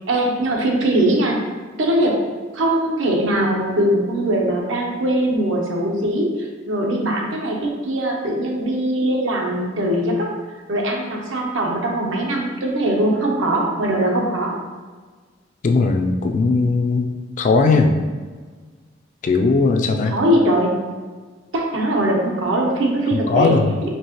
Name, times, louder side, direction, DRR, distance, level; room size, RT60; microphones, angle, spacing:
voice 1, 0.1-1.4 1.8-2.1 2.5-10.3 10.7-14.6 20.0-20.7 21.5-23.9, right 1 dB, 80° right, 0 dB, 0.8 m, -21 dB
voice 2, 15.6-17.1 17.4-17.9 19.2-20.1 23.1-23.7, left 3 dB, 40° left, 4 dB, 0.3 m, -18 dB
4.5 x 2.7 x 2.9 m, 1.4 s
head